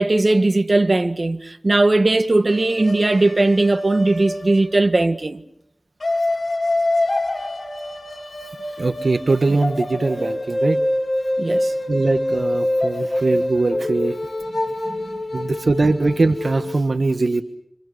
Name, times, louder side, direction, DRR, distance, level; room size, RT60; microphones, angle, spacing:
voice 1, 0.0-5.4 11.4-11.7 14.9-15.2, right 2 dB, 55° right, 1.9 m, -18 dB
sound 1, 2.5-5.0 6.0-16.8, left 1 dB, 65° left, 4.0 m, -25 dB
voice 2, 8.8-10.8 11.9-14.2 15.3-17.4, right 3 dB, 75° right, 1.4 m, -21 dB
29.5 x 27.5 x 6.5 m
wide cardioid pair, 55°, 0 cm